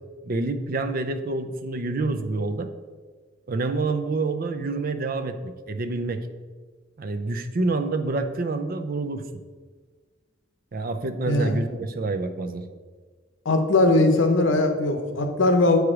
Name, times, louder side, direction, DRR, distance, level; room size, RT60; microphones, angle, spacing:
voice 1, 0.2-2.7 3.5-6.3 7.0-9.2 10.7-12.6, right 3 dB, 50° right, 9 dB, 0.5 m, -27 dB
voice 2, 11.3-11.6 13.4-15.8, left 2 dB, 80° left, 6 dB, 0.9 m, -20 dB
8.1 x 4.7 x 4.9 m, 1.5 s
head